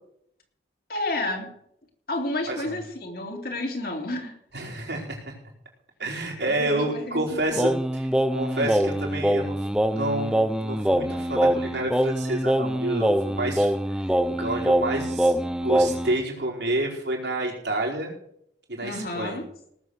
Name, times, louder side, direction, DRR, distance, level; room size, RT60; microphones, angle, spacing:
voice 1, 0.9-1.5 2.1-4.4 6.4-7.7 18.8-19.4, left 2 dB, 55° left, 2 dB, 2.8 m, -31 dB
voice 2, 2.5-2.8 4.5-5.3 6.0-7.7 8.3-14.0 14.4-18.1 18.7-19.4, right 1 dB, 75° right, -2 dB, 4.7 m, -29 dB
Singing, 7.6-16.2, right 1 dB, 5° right, 0.6 m, -24 dB
18.5 x 7.3 x 6.5 m, 0.71 s
head